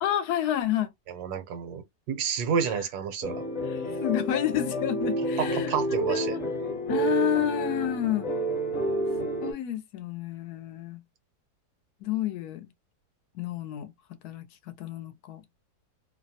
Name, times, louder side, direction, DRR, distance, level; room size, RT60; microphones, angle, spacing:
voice 1, 0.0-0.9 3.7-5.7 6.1-6.4 6.9-8.3 9.4-11.0 12.0-12.7 13.4-13.9 14.2-14.5 14.8-15.4, left 11 dB, 75° left, 1.1 m, -29 dB
voice 2, 1.1-3.4 5.4-6.4, right 7 dB, 75° right, 1.2 m, -30 dB
sound 1, 3.2-9.5, right 1 dB, 50° left, 1.1 m, -30 dB
2.9 x 2.1 x 2.7 m
omnidirectional pair, 1.7 m